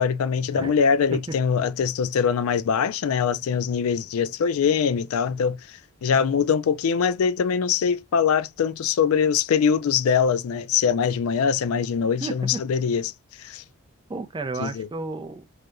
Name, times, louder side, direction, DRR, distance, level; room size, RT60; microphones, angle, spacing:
voice 1, 0.0-5.6 6.0-13.1 13.4-13.6 14.6-14.9, left 6 dB, 75° left, 0.3 m, -23 dB
voice 2, 12.2-12.6 14.1-15.5, right 3 dB, 20° right, 0.3 m, -32 dB
3.3 x 2.7 x 2.4 m
head